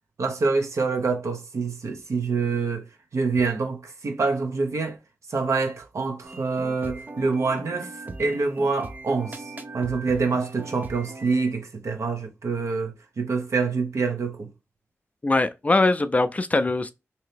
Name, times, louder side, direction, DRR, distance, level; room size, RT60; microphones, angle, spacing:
voice 1, 0.2-2.9 3.1-5.0 5.3-7.9 8.2-9.4 9.7-14.5, right 4 dB, 75° right, 0.8 m, -26 dB
sound 1, 6.2-11.5, right 2 dB, 35° right, 0.4 m, -40 dB
voice 2, 15.2-16.9, left 2 dB, 30° left, 0.4 m, -21 dB
2.8 x 2.8 x 3.3 m
wide cardioid pair, 95°, 5 cm